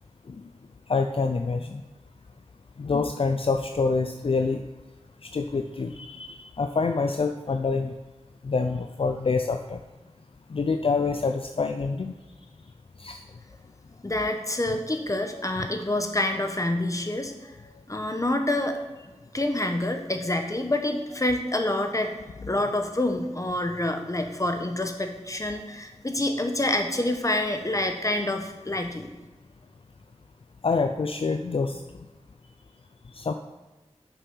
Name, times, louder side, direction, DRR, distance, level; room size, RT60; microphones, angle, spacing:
voice 1, 0.9-1.8 2.8-4.6 5.2-7.9 8.4-9.8 10.5-12.1 13.0-13.2 30.6-31.8 33.1-33.3, left 4 dB, 55° left, 7 dB, 0.4 m, -26 dB
voice 2, 14.0-18.8 19.3-22.1 22.5-29.1, left 1 dB, 30° left, 5 dB, 1.0 m, -27 dB
7.0 x 5.4 x 5.5 m, 1.2 s
wide cardioid pair, 60°, 11 cm